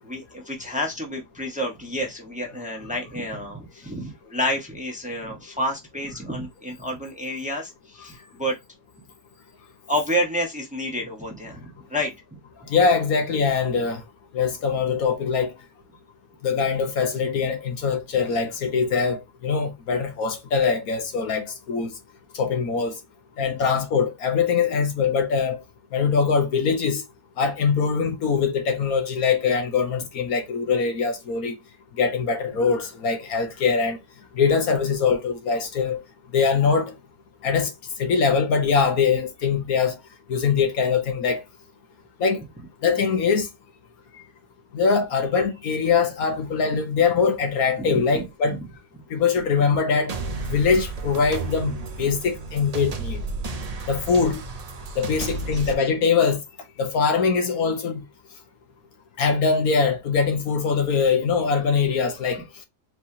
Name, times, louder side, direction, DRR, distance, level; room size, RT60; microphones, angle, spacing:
voice 1, 0.0-8.6 9.9-11.6 11.9-12.1 23.5-23.6 48.1-48.6 55.7-55.8, equal, 5° right, 1.2 m, -29 dB
voice 2, 12.7-14.0 14.3-15.5 16.4-21.9 22.4-22.9 23.4-25.6 25.9-27.0 27.4-31.6 32.0-34.0 34.3-36.0 36.3-36.9 37.4-37.7 38.0-40.0 40.3-41.4 42.2-42.4 42.8-43.5 44.7-48.6 49.1-50.1 50.5-53.2 53.9-54.4 54.9-56.4 56.8-58.0 59.2-62.4, left 5 dB, 70° left, 1.4 m, -22 dB
sound 1, 50.1-55.7, right 3 dB, 55° right, 0.4 m, -32 dB
4.7 x 3.3 x 2.8 m
omnidirectional pair, 1.7 m